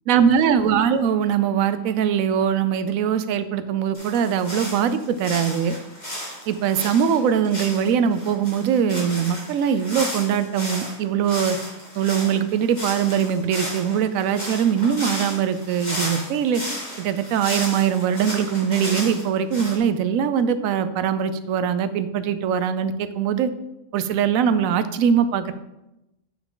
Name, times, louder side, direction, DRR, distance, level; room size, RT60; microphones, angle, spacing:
voice 1, 0.1-5.8 6.5-11.6 12.0-16.6 17.0-23.5 23.9-25.5, right 8 dB, 85° right, 12 dB, 1.0 m, -22 dB
sound 1, 3.9-10.9 11.2-19.8, equal, 30° left, 2.4 m, -33 dB
8.5 x 4.7 x 3.8 m, 0.92 s
omnidirectional pair, 1.4 m